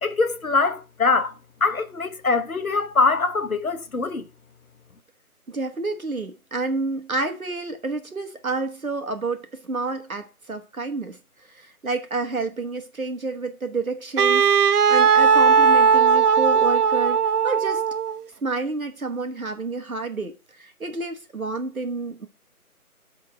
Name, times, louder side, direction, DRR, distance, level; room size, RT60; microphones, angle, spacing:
voice 1, 0.0-1.3 1.6-4.2, left 4 dB, 65° left, 1.1 m, -23 dB
voice 2, 5.5-11.2 11.5-17.8 18.4-22.3, right 3 dB, 65° right, 1.3 m, -29 dB
Wind instrument woodwind instrument, 14.2-18.2, right 6 dB, 85° right, 0.6 m, -18 dB
8.6 x 3.7 x 6.1 m
figure-of-eight pair, 160°, 45 cm